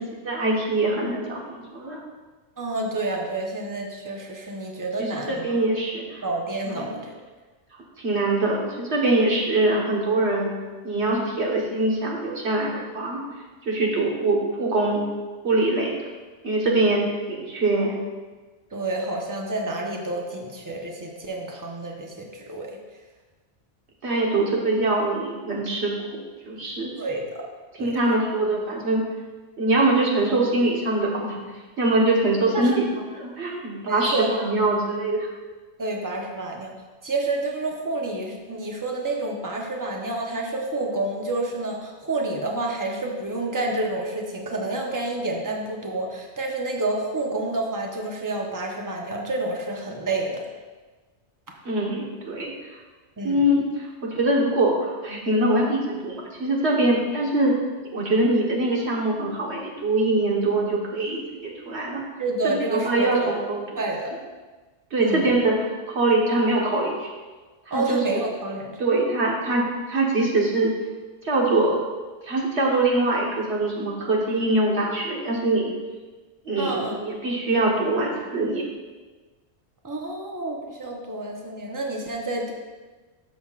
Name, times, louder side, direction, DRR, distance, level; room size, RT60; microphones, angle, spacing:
voice 1, 0.0-2.0 5.0-6.2 6.7-7.0 8.0-10.5 10.8-13.2 13.6-15.0 15.4-15.9 16.4-17.9 24.0-25.9 26.5-26.9 27.8-29.0 29.6-31.4 31.8-32.8 33.1-35.3 51.6-52.5 53.2-57.5 57.9-62.0 62.4-63.6 64.9-65.6 65.9-67.1 67.7-68.2 68.8-69.6 69.9-70.7 71.2-71.8 72.3-75.7 76.4-78.6, right 2 dB, 70° right, -2 dB, 1.7 m, -23 dB
voice 2, 2.6-5.4 6.2-7.1 18.7-22.7 27.0-27.4 27.8-28.0 32.5-32.8 33.9-34.4 35.8-36.7 37.0-50.5 53.2-53.4 62.2-63.3 63.8-64.2 65.0-65.3 67.7-68.8 76.6-77.0 79.8-82.5, right 2 dB, 20° right, 0 dB, 0.9 m, -29 dB
13.0 x 6.2 x 2.5 m, 1.3 s
omnidirectional pair, 1.2 m